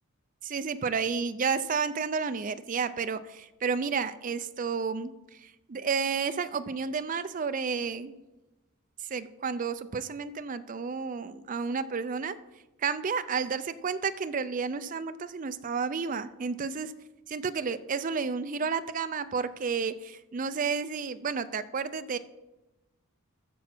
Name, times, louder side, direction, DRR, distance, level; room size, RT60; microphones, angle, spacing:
voice 1, 0.4-5.1 5.4-8.2 9.1-12.4 12.8-16.9 17.3-22.2, right 5 dB, 40° right, 12 dB, 0.4 m, -31 dB
13.5 x 7.2 x 4.4 m, 1.0 s
head